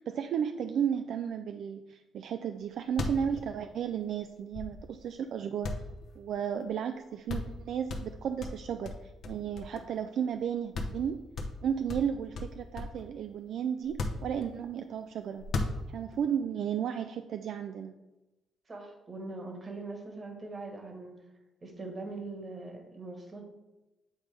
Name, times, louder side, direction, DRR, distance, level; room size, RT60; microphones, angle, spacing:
voice 1, 0.0-5.8 6.2-11.2 11.6-15.5 15.9-17.9, right 8 dB, 70° right, 7 dB, 0.3 m, -34 dB
sound 1, 2.6-2.7 2.9-5.1 5.6-6.7 7.0-7.1 7.3-7.6 7.9-10.0 10.4-10.5 10.7-11.0 11.3-13.1 13.8-14.8 15.4-16.2, left 3 dB, 65° left, 0.8 m, -36 dB
voice 2, 18.7-21.2 21.6-23.5, right 3 dB, 35° right, 3 dB, 1.4 m, -42 dB
8.2 x 3.7 x 3.4 m, 1.0 s
cardioid pair, 90°, 0 cm